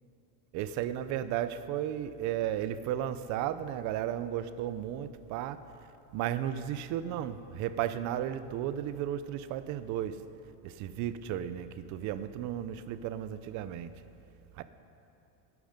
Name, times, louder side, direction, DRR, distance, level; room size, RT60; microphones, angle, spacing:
voice 1, 0.5-5.6 6.1-10.2 10.6-13.9 14.6-14.7, right 11 dB, 40° right, 13 dB, 0.6 m, -34 dB
18.0 x 11.0 x 5.2 m, 2.8 s
cardioid pair, 165°, 43 cm